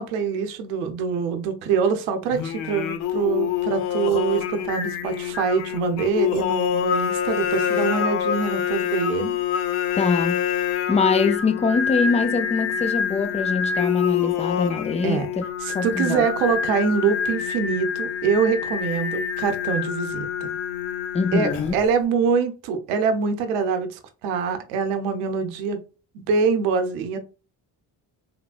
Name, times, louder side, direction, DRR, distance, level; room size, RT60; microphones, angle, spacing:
voice 1, 0.0-9.4 15.0-15.3 15.6-20.5 21.3-25.8 26.1-27.2, right 6 dB, 85° right, 0.6 m, -24 dB
Singing, 2.3-21.9, left 9 dB, 85° left, 0.6 m, -26 dB
voice 2, 10.0-10.4 10.9-15.4 15.7-16.3 21.1-21.8, left 4 dB, 15° left, 0.3 m, -23 dB
3.3 x 2.1 x 2.3 m
hypercardioid pair, 50°, 50 cm